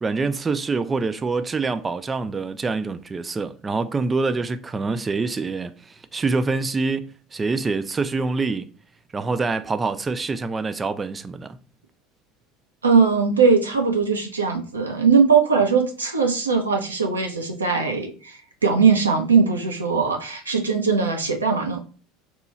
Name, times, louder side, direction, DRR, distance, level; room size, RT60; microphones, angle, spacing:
voice 1, 0.0-8.7 9.1-11.6, right 4 dB, 20° right, 0.3 m, -25 dB
voice 2, 12.8-21.8, right 5 dB, 85° right, 0.6 m, -20 dB
3.0 x 2.3 x 3.8 m
figure-of-eight pair, 75°, 0 cm